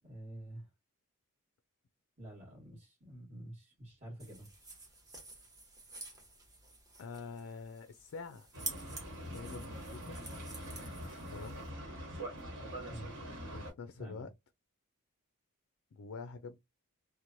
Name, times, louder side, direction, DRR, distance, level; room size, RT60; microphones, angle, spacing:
voice 1, 0.0-0.7 2.2-4.5 12.9-13.1 14.0-14.3, right 1 dB, 40° right, 1.3 m, -48 dB
sound 1, 4.2-11.7, right 3 dB, 15° right, 0.9 m, -49 dB
voice 2, 7.0-8.5 9.3-10.2 11.3-11.6 13.5-14.3 15.9-16.6, left 4 dB, 60° left, 0.4 m, -46 dB
Boat Water vehicle, 8.5-13.7, equal, 55° right, 1.3 m, -44 dB
3.0 x 2.0 x 2.5 m
head